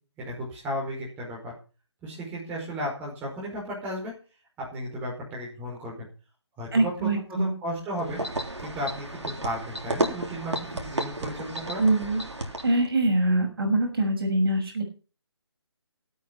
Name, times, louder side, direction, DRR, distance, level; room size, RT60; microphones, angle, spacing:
voice 1, 0.2-1.5 2.0-4.1 4.6-6.1 6.6-8.2 8.6-11.8, equal, 10° right, -4 dB, 5.2 m, -34 dB
voice 2, 6.7-7.5 11.8-12.2 12.6-14.8, right 2 dB, 55° right, 3 dB, 6.3 m, -23 dB
sound 1, 8.0-12.9, right 1 dB, 85° right, 3.4 m, -32 dB
16.0 x 8.8 x 5.5 m, 0.36 s
figure-of-eight pair, 155°, 14 cm